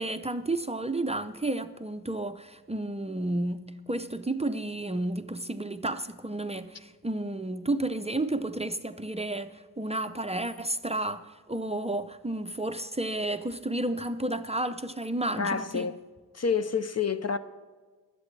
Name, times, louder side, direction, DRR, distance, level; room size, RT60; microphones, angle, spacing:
voice 1, 0.0-15.9, right 2 dB, 15° right, 0.5 m, -32 dB
voice 2, 15.4-16.0 16.3-17.4, left 5 dB, 40° left, 0.6 m, -28 dB
23.0 x 8.4 x 3.2 m
wide cardioid pair, 80°, 39 cm